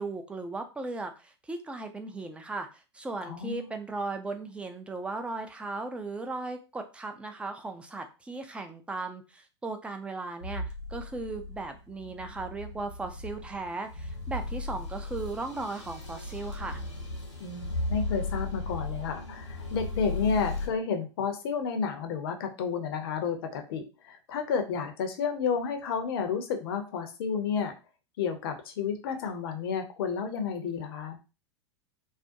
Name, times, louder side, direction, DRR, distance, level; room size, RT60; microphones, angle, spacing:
voice 1, 0.0-10.6 10.9-16.8, right 3 dB, 5° right, 6 dB, 0.4 m, -37 dB
voice 2, 3.2-3.7 17.4-27.7 28.2-31.2, left 6 dB, 55° left, 6 dB, 0.6 m, -31 dB
sound 1, 10.4-20.7, left 2 dB, 85° left, 0.9 m, -36 dB
2.4 x 2.1 x 2.6 m, 0.31 s
figure-of-eight pair, 90°, 15 cm